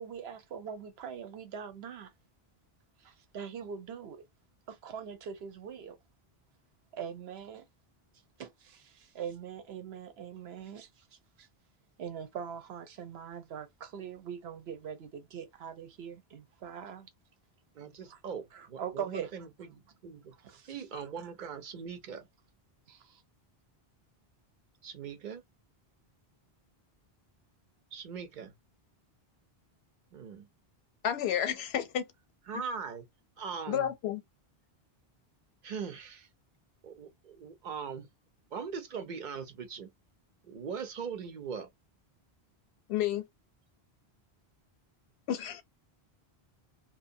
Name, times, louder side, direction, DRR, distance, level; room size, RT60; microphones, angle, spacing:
voice 1, 0.0-2.1 3.0-4.2 4.7-6.0 6.9-7.6 8.4-11.1 11.4-11.5 12.0-17.1 18.0-18.2 18.5-19.3 20.3-21.3 22.9-23.2, right 7 dB, 85° right, 0.9 m, -42 dB
voice 2, 17.8-20.3 20.7-22.3 24.8-25.4 27.9-28.5 30.1-30.5 32.5-33.0 33.4-33.9 35.6-36.3 36.8-38.1 38.5-39.9 40.4-41.7, right 6 dB, 55° right, 0.7 m, -40 dB
voice 3, 31.0-32.1 33.7-34.2 42.9-43.3 45.3-45.6, left 10 dB, 90° left, 0.8 m, -31 dB
2.6 x 2.1 x 2.5 m
omnidirectional pair, 1.0 m